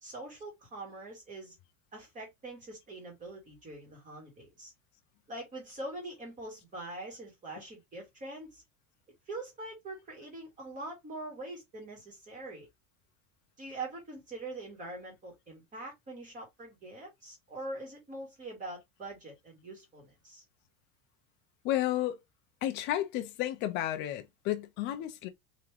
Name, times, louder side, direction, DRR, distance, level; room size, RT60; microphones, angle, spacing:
voice 1, 0.0-1.5 1.9-4.7 5.3-8.6 9.3-12.7 13.6-20.4, right 2 dB, 20° right, 2.1 m, -43 dB
voice 2, 21.6-22.2 22.6-25.3, left 13 dB, 25° left, 0.4 m, -32 dB
3.7 x 3.3 x 3.3 m
supercardioid pair, 165°, 43 cm